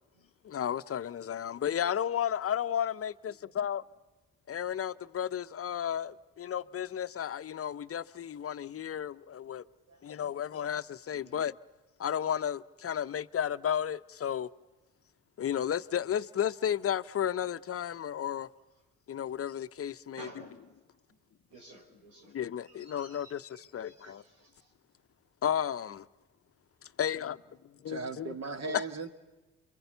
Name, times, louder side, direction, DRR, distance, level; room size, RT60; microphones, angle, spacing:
voice 1, 0.4-3.8 4.5-9.6 10.0-11.5 12.0-14.5 15.4-18.5 19.1-20.3 22.2-24.2 25.4-26.1 27.0-28.3 28.6-28.8, left 9 dB, 40° left, 0.7 m, -33 dB
voice 2, 9.9-10.6 11.1-11.4 15.9-16.0 20.2-20.6 21.1-21.2 21.5-22.4 22.6-24.7, right 2 dB, 85° right, 5.0 m, -54 dB
voice 3, 27.9-29.1, right 4 dB, 45° right, 2.2 m, -38 dB
28.5 x 23.0 x 6.9 m
hypercardioid pair, 55°, 35 cm